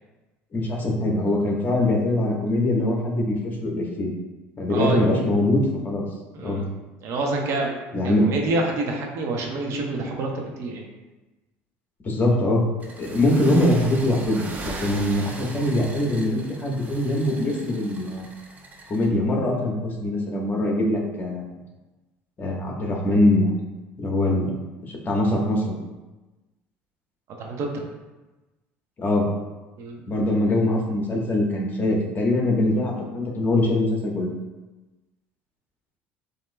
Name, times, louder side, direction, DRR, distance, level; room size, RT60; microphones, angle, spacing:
voice 1, 0.5-4.1 4.6-6.0 6.4-6.6 7.9-8.3 12.0-18.2 18.9-21.6 22.4-23.5 24.0-24.5 24.9-25.7 29.0-29.3 30.1-34.3, left 1 dB, 35° left, -1 dB, 1.2 m, -23 dB
voice 2, 4.7-5.2 6.3-6.6 7.0-7.7 8.0-10.8 27.4-27.8 29.8-30.0, right 2 dB, 60° right, 1 dB, 0.9 m, -27 dB
sound 1, 12.8-19.1, right 3 dB, 30° right, 0.8 m, -39 dB
7.3 x 2.8 x 2.2 m, 1.1 s
supercardioid pair, 90°, 5 cm